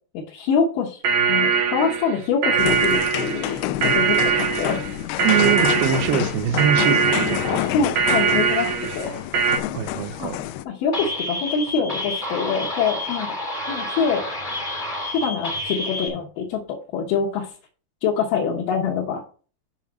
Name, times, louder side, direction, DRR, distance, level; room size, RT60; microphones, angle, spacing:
voice 1, 0.1-3.6 3.8-4.8 7.7-9.1 10.2-10.3 10.6-13.3 13.7-14.3 15.1-17.5 18.0-19.2, left 6 dB, 65° left, -3 dB, 2.5 m, -25 dB
sound 1, 1.0-9.6, right 6 dB, 60° right, 2.1 m, -22 dB
sound 2, 2.6-10.6, left 13 dB, 80° left, 2.4 m, -28 dB
voice 2, 5.2-7.6 9.7-10.4, right 10 dB, 75° right, 9 dB, 2.4 m, -23 dB
sound 3, 10.9-16.1, left 1 dB, 25° left, 1.1 m, -29 dB
7.2 x 5.6 x 6.2 m, 0.41 s
omnidirectional pair, 4.8 m